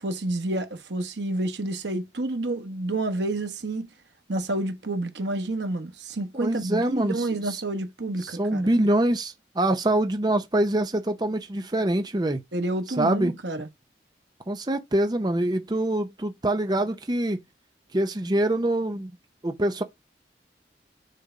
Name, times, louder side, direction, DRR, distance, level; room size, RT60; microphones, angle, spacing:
voice 1, 0.0-3.9 4.3-8.7 12.5-13.7, right 2 dB, 90° right, 1.2 m, -29 dB
voice 2, 6.3-7.6 8.2-12.4 13.0-13.3 14.5-17.4 17.9-19.1 19.4-19.8, right 1 dB, 25° right, 0.6 m, -25 dB
6.5 x 3.4 x 5.0 m
head